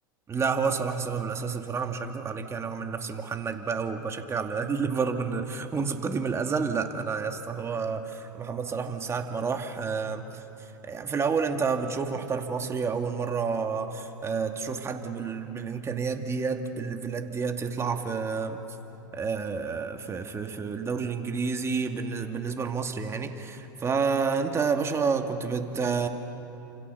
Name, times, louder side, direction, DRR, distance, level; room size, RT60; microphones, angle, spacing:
voice 1, 0.3-10.2 10.8-18.6 19.1-26.1, right 5 dB, 25° right, 5 dB, 2.3 m, -29 dB
29.5 x 26.5 x 6.9 m, 2.9 s
hypercardioid pair, 95°, 11 cm